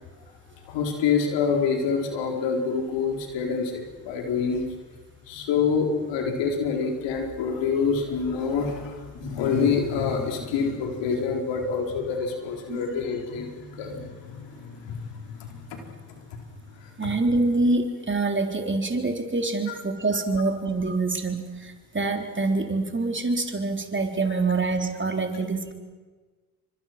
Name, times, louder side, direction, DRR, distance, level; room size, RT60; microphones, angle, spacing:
voice 1, 0.6-4.6 5.3-15.9 16.3-16.4 16.8-16.9, left 5 dB, 75° left, 2 dB, 4.5 m, -27 dB
voice 2, 12.7-13.0 17.0-25.7, right 3 dB, 25° right, 4 dB, 4.0 m, -26 dB
29.0 x 25.5 x 6.1 m, 1.4 s
hypercardioid pair, 55°, 44 cm